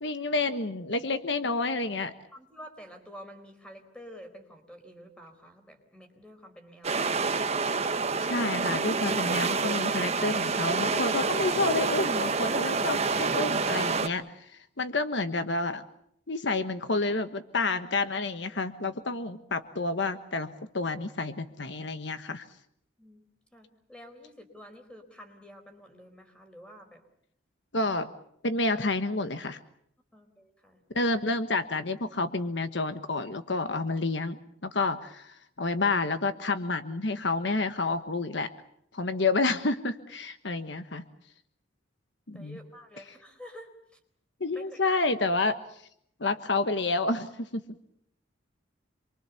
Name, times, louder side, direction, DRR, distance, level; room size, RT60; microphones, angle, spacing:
voice 1, 0.0-2.1 8.2-15.8 16.3-22.4 27.7-28.1 28.4-29.6 30.9-38.5 38.9-41.0 42.3-42.6 44.4-45.6 46.2-47.6, left 3 dB, 65° left, 9 dB, 1.3 m, -29 dB
voice 2, 2.3-7.2 23.0-27.0 30.1-30.8 42.3-44.0 44.5-45.0, equal, 5° left, 5 dB, 4.4 m, -49 dB
sound 1, 6.8-14.1, right 4 dB, 35° right, 1.1 m, -28 dB
27.5 x 23.5 x 7.1 m, 0.71 s
head